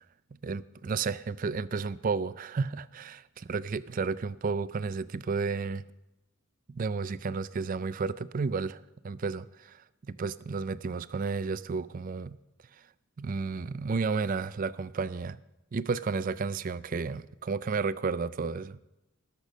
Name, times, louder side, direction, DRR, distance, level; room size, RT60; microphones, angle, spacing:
voice 1, 0.3-5.8 6.7-12.4 12.7-12.8 13.2-15.4 15.7-18.8, right 4 dB, 40° right, 0.4 m, -32 dB
18.5 x 6.8 x 5.3 m
head